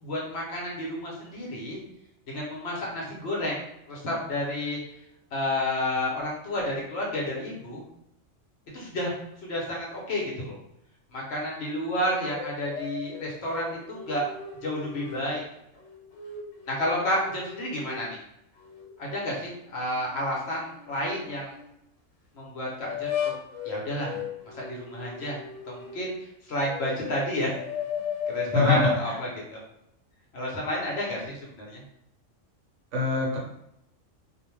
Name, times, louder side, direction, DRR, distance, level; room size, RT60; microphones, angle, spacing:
voice 1, 0.0-1.8 2.3-3.6 3.9-4.8 5.3-7.8 8.7-10.6 11.1-14.3 14.6-15.4 16.7-18.2 19.0-21.5 22.3-23.3 23.6-24.2 24.5-25.4 25.7-27.5 28.3-29.6 30.3-31.8, left 1 dB, 60° left, -3 dB, 0.9 m, -31 dB
sound 1, 12.0-15.3 15.8-18.1 18.6-21.7 22.8-26.1 26.6-29.1, left 7 dB, 80° left, 1.1 m, -36 dB
voice 2, 28.5-28.9 32.9-33.4, left 2 dB, 70° right, -3 dB, 1.0 m, -23 dB
2.5 x 2.1 x 3.0 m, 0.80 s
omnidirectional pair, 1.3 m